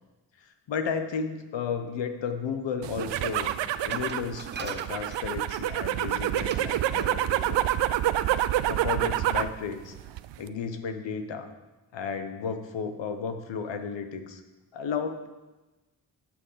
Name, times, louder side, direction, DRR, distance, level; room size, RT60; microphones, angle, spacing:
voice 1, 0.4-3.5 3.8-7.6 8.7-9.9 10.4-11.5 11.9-14.4 14.7-15.3, left 6 dB, 75° left, 7 dB, 1.2 m, -33 dB
sound 1, 2.8-9.6 9.9-10.5, right 13 dB, 75° right, 0.5 m, -27 dB
Glass, 3.9-5.7 6.4-6.7 7.0-7.2, right 5 dB, 25° right, 0.6 m, -42 dB
10.5 x 6.0 x 5.7 m, 1.1 s
cardioid pair, 70°, 44 cm